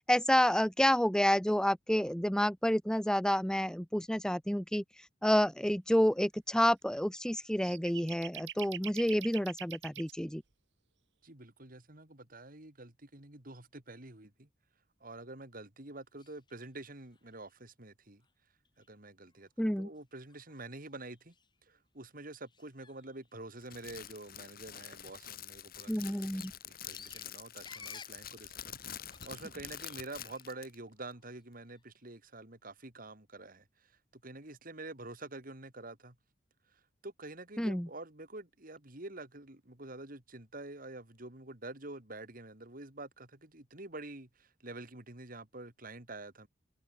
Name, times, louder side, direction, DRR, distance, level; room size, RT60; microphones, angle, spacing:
voice 1, 0.1-4.8 5.2-10.4 19.6-19.9 25.9-26.5 37.6-37.9, equal, 5° left, 1.3 m, -29 dB
sound 1, 7.1-7.2 7.6-10.1, right 10 dB, 70° right, 1.8 m, -43 dB
voice 2, 11.2-14.5 15.0-18.2 18.8-21.3 21.7-36.2 37.0-46.5, right 2 dB, 50° right, 3.4 m, -47 dB
sound 2, 16.2-16.7 17.0-17.6 18.2-18.3 18.6-18.9 19.3-19.4 20.0-20.1 20.3-21.6 22.4-23.9 24.2-24.4 24.7-30.6 31.0-31.9, left 5 dB, 25° left, 6.3 m, -57 dB
Crackle, 23.6-30.8, left 10 dB, 55° left, 4.9 m, -47 dB
head